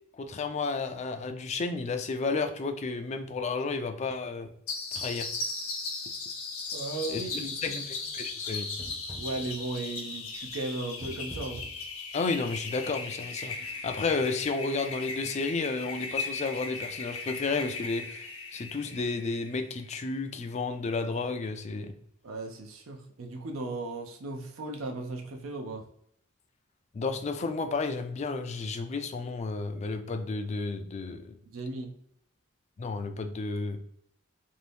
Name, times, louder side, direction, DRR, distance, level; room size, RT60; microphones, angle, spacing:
voice 1, 0.1-4.5 4.9-5.3 7.1-8.7 12.1-13.6 13.8-21.9 26.9-31.4 32.8-33.8, left 3 dB, 35° left, 7 dB, 0.3 m, -32 dB
sound 1, 4.7-19.9, left 4 dB, 85° left, 0.8 m, -37 dB
voice 2, 6.7-7.8 9.2-11.6 22.2-25.8 31.5-31.9, right 2 dB, 75° right, 3 dB, 0.5 m, -36 dB
sound 2, 6.8-7.6 7.9-9.6 10.0-11.9 12.4-12.5 12.9-13.2 13.5-14.1 14.4-14.5 14.9-15.0 15.3-15.5, right 1 dB, 15° right, 0.6 m, -47 dB
2.7 x 2.6 x 3.3 m, 0.69 s
head